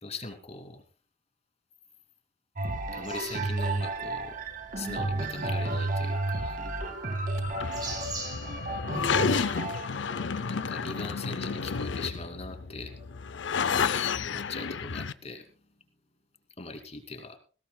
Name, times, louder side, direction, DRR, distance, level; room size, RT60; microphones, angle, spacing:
voice 1, 0.0-0.8 2.9-4.4 4.7-6.6 7.9-8.2 10.3-13.0 14.2-15.5 16.6-17.4, left 3 dB, 35° left, 6 dB, 2.7 m, -41 dB
sound 1, 2.6-12.3 13.0-13.1, right 2 dB, 50° right, 2.0 m, -33 dB
sound 2, 2.7-8.8, right 3 dB, 25° right, 4.9 m, -45 dB
sound 3, 7.4-15.1, left 6 dB, 80° left, 0.6 m, -31 dB
20.5 x 17.0 x 2.3 m, 0.36 s
head